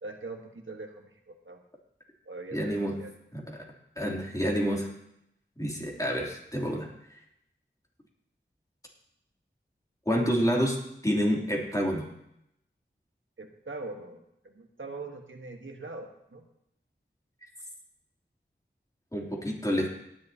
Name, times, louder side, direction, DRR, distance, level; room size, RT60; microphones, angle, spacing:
voice 1, 0.0-1.6 2.2-3.1 13.4-16.5, right 3 dB, 80° right, 3 dB, 1.3 m, -42 dB
voice 2, 2.5-3.0 3.3-3.6 4.0-4.9 5.6-6.9 10.1-10.8 11.0-12.1 19.1-19.9, equal, 15° left, -2 dB, 3.0 m, -28 dB
18.0 x 10.5 x 2.8 m, 0.79 s
wide cardioid pair, 45°, 20 cm